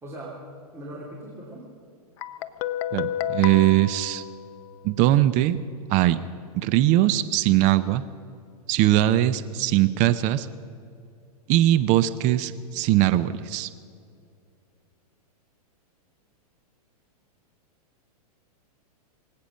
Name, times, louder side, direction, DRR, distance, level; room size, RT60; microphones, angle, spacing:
voice 1, 0.0-0.3 0.7-1.6, right 1 dB, 15° right, -6 dB, 3.0 m, -39 dB
Guitar, 2.2-5.0, left 11 dB, 45° left, 0.7 m, -31 dB
voice 2, 2.9-4.2 4.8-5.6 5.9-6.2 6.5-8.0 8.7-10.5 11.5-13.7, right 14 dB, 40° right, 13 dB, 0.7 m, -21 dB
24.0 x 8.6 x 6.4 m, 2.4 s
hypercardioid pair, 115°, 20 cm